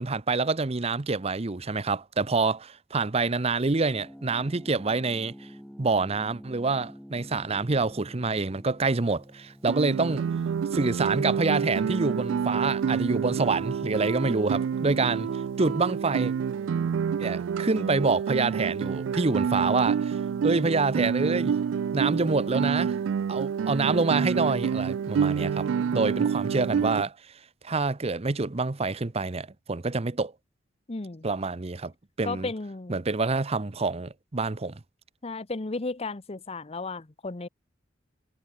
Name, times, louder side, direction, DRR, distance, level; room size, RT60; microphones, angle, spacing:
voice 1, 0.0-5.3 5.8-10.2 10.7-15.3 15.6-16.3 17.2-21.6 21.9-22.9 23.3-25.7 25.9-27.1 27.6-30.3 31.2-31.9 32.2-32.5 32.9-34.8, right 3 dB, 35° right, 0.8 m, -27 dB
sound 1, 3.9-18.7, equal, 5° left, 4.5 m, -51 dB
Guitar, 9.7-27.0, right 7 dB, 80° right, 0.3 m, -28 dB
voice 2, 30.9-31.3 32.2-33.0 35.2-37.5, left 3 dB, 35° left, 0.8 m, -34 dB
head